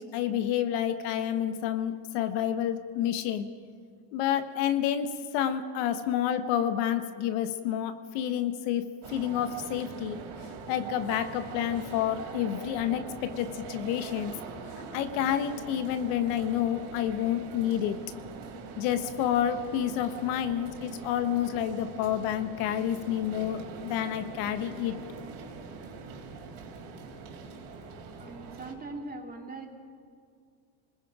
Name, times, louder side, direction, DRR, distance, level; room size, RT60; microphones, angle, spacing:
voice 1, 0.0-3.5 4.1-10.2 10.7-14.3 14.9-18.0 18.8-25.0, left 10 dB, 85° left, 9 dB, 1.6 m, -29 dB
sound 1, 9.0-28.7, right 4 dB, 80° right, 4.2 m, -43 dB
voice 2, 28.2-29.7, right 2 dB, 20° right, 2 dB, 2.5 m, -40 dB
29.0 x 20.5 x 5.0 m, 2.2 s
cardioid pair, 140°, 50 cm